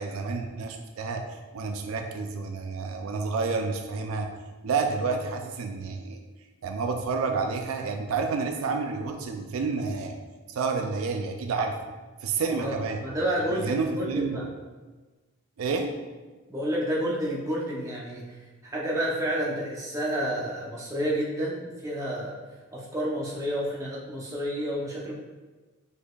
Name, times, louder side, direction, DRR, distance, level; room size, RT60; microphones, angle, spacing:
voice 1, 0.0-4.3 4.6-6.2 6.6-10.2 10.5-11.8 12.2-13.0 13.6-14.5 15.6-16.0, right 4 dB, 75° right, 5 dB, 0.4 m, -29 dB
voice 2, 12.5-14.5 16.5-22.4 22.7-25.1, right 1 dB, 15° right, -5 dB, 0.7 m, -30 dB
5.1 x 4.0 x 2.3 m, 1.3 s
head